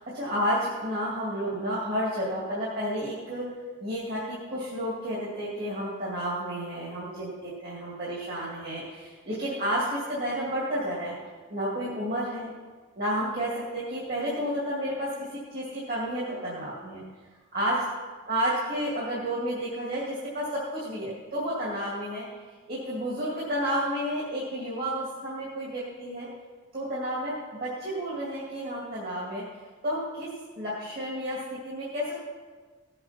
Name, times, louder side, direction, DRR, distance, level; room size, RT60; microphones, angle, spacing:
voice 1, 0.0-3.5 3.8-11.2 11.5-12.5 13.0-17.0 17.5-17.8 18.3-22.3 22.7-26.3 26.7-29.4 29.8-30.3 30.6-32.1, equal, 45° right, -6 dB, 2.4 m, -31 dB
17.5 x 7.9 x 4.4 m, 1.4 s
head